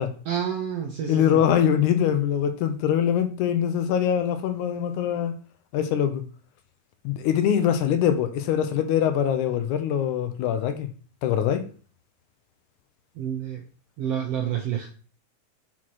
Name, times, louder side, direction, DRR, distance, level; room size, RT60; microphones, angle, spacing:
voice 1, 0.3-1.4 13.2-13.6 14.0-14.9, right 8 dB, 75° right, 1.4 m, -28 dB
voice 2, 1.1-5.4 5.7-6.2 7.1-10.9 11.2-11.6, left 9 dB, 80° left, 2.0 m, -23 dB
5.8 x 4.2 x 4.5 m
omnidirectional pair, 3.6 m